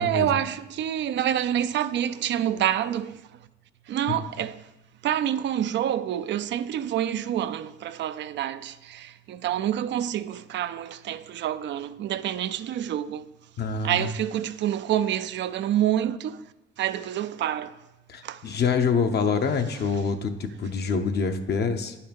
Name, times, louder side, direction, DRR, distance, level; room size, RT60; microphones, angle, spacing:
voice 1, 0.0-3.2 3.9-4.7 5.0-13.3 13.8-16.4 16.8-17.8 18.2-18.4, right 11 dB, 65° right, 0.4 m, -27 dB
voice 2, 13.6-14.1 18.1-21.9, left 5 dB, 55° left, 0.9 m, -26 dB
10.0 x 5.7 x 5.2 m
cardioid pair, 90°, 20 cm